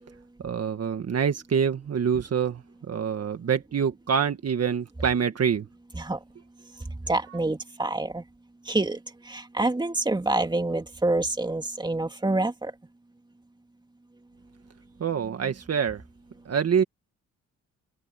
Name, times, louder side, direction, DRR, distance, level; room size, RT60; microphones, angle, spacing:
voice 1, 0.4-2.6 2.9-5.6 15.0-16.0 16.5-16.8, right 7 dB, 50° right, 1.7 m, -26 dB
voice 2, 7.1-8.2 8.7-9.0 9.2-12.7, right 2 dB, 15° right, 2.6 m, -27 dB
open air
cardioid pair, 95°, 32 cm